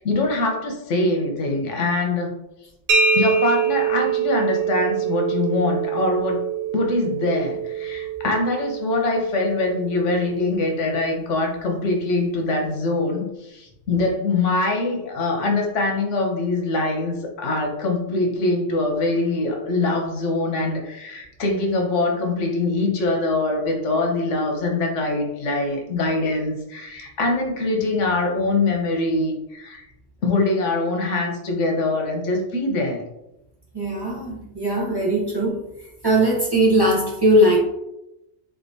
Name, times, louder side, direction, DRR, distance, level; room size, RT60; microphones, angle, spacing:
voice 1, 0.0-2.3 3.1-6.5 6.7-29.9 30.2-33.0, left 2 dB, 90° left, 2 dB, 1.1 m, -23 dB
sound 1, 2.9-10.4, right 7 dB, 80° right, 1.0 m, -25 dB
voice 2, 33.7-35.6 36.0-37.6, right 1 dB, 25° right, -5 dB, 0.7 m, -19 dB
3.6 x 3.6 x 2.6 m, 0.89 s
omnidirectional pair, 1.2 m